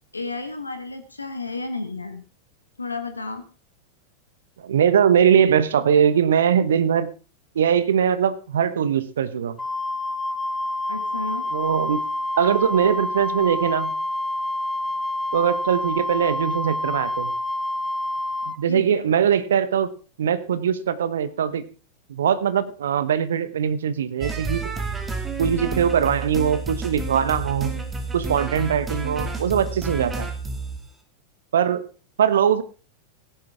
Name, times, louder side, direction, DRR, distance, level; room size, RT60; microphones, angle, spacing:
voice 1, 0.1-2.2 2.8-3.5 10.9-11.5 18.7-19.1, left 3 dB, 80° left, 8 dB, 1.3 m, -32 dB
voice 2, 4.6-7.1 7.5-9.6 11.5-12.0 12.4-13.9 15.3-17.3 18.5-19.9 20.2-21.6 22.1-24.7 25.4-27.8 28.1-30.3 31.5-31.8 32.2-32.6, right 8 dB, 65° right, 14 dB, 1.0 m, -21 dB
Wind instrument woodwind instrument, 9.6-18.6, left 1 dB, 10° left, 0.6 m, -27 dB
sound 1, 24.2-30.8, right 3 dB, 15° right, 2.3 m, -30 dB
16.5 x 10.5 x 3.5 m, 0.35 s
figure-of-eight pair, 90°, 0 cm